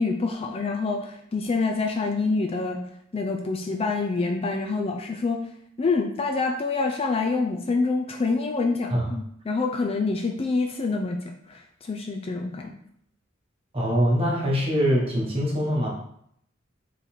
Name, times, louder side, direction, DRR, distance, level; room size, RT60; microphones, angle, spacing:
voice 1, 0.0-2.8 3.1-5.4 5.8-11.2 11.5-12.7, left 3 dB, 30° left, 2 dB, 0.4 m, -26 dB
voice 2, 13.7-15.9, equal, 30° right, -3 dB, 1.3 m, -23 dB
3.9 x 3.2 x 4.3 m, 0.69 s
head